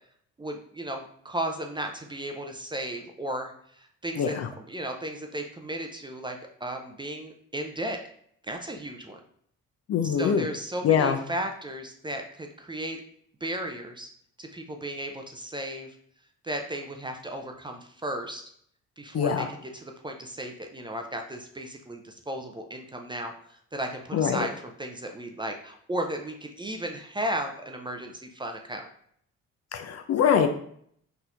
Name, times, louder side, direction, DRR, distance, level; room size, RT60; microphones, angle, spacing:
voice 1, 0.4-8.0 8.4-9.2 10.0-13.0 13.4-14.1 14.4-16.0 16.4-18.4 19.0-19.5 19.7-28.9, right 1 dB, 15° right, 3 dB, 0.4 m, -35 dB
voice 2, 4.2-4.5 9.9-10.5 10.8-11.2 19.1-19.5 24.1-24.5 29.7-30.5, left 7 dB, 50° left, 8 dB, 0.5 m, -23 dB
4.0 x 2.7 x 2.4 m, 0.65 s
supercardioid pair, 70°, 34 cm